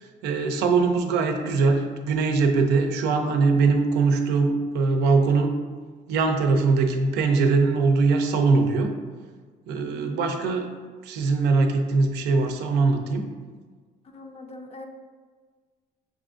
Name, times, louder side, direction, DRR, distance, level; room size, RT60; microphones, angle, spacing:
voice 1, 0.0-5.5 6.1-8.9 9.7-10.7 11.0-13.3, right 4 dB, 85° right, 5 dB, 0.5 m, -22 dB
voice 2, 9.7-10.2 14.0-14.9, left 2 dB, 35° left, 4 dB, 0.5 m, -42 dB
5.7 x 2.5 x 2.4 m, 1.5 s
cardioid pair, 110°, 17 cm